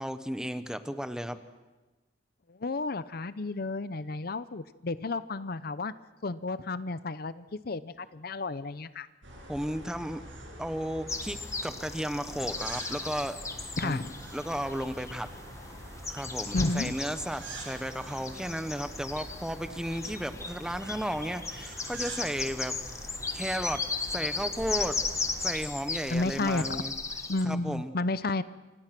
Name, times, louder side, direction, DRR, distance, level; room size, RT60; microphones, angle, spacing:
voice 1, 0.0-1.4 9.5-10.2 10.6-13.4 13.8-14.0 14.3-15.3 16.1-22.8 23.3-25.1 25.4-26.9 27.4-27.9, equal, 5° right, 10 dB, 1.1 m, -34 dB
voice 2, 2.5-5.9 6.2-9.1 13.8-14.1 16.5-17.0 26.1-26.8 27.3-28.4, left 2 dB, 55° left, 15 dB, 0.7 m, -32 dB
sound 1, 9.2-25.5, right 1 dB, 85° right, 7.7 m, -45 dB
sound 2, 11.1-27.4, left 3 dB, 15° left, 1.5 m, -37 dB
sound 3, 13.5-19.4, right 1 dB, 70° right, 5.3 m, -60 dB
28.5 x 25.0 x 6.0 m, 1.1 s
head